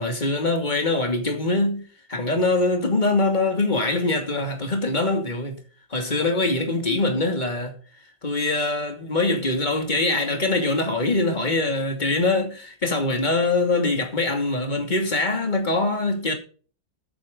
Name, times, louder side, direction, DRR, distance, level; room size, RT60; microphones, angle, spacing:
voice 1, 0.0-5.6 5.9-7.8 8.2-16.3, left 2 dB, 25° left, 2.8 m, -23 dB
14.0 x 9.1 x 3.9 m
omnidirectional pair, 2.1 m